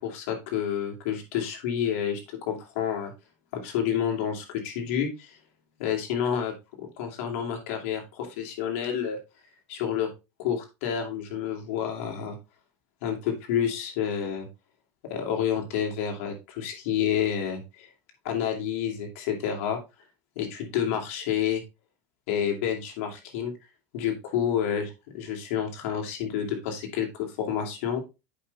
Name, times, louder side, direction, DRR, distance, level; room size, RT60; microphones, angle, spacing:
voice 1, 0.0-2.2 2.5-3.1 3.5-5.4 5.8-9.2 9.7-10.1 10.4-12.4 13.0-14.5 15.1-17.9 18.2-19.8 20.4-21.6 22.3-23.5 23.9-28.0, left 8 dB, 70° left, 2 dB, 2.7 m, -29 dB
8.3 x 5.5 x 3.4 m, 0.26 s
supercardioid pair, 155°, 7 cm